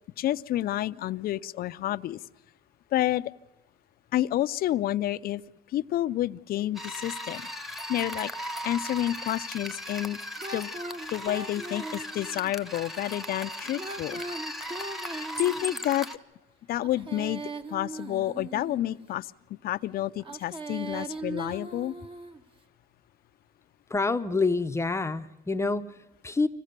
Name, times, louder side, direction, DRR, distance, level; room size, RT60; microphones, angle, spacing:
voice 1, 0.2-2.2 2.9-3.2 4.1-5.4 5.7-7.4 7.9-8.3 8.6-10.2 10.5-10.7 11.1-14.2 15.4-16.1 16.7-17.4 17.7-19.3 19.6-21.9, left 13 dB, 65° left, 14 dB, 0.6 m, -29 dB
sound 1, 6.7-16.2, equal, ahead, 1.2 m, -37 dB
Female singing, 10.4-12.5 13.6-16.0 16.7-18.9 20.2-22.4, right 2 dB, 30° right, 1.5 m, -39 dB
voice 2, 23.9-26.5, left 3 dB, 15° left, 8 dB, 0.8 m, -27 dB
25.5 x 16.5 x 6.7 m, 1.1 s
cardioid pair, 110°, 17 cm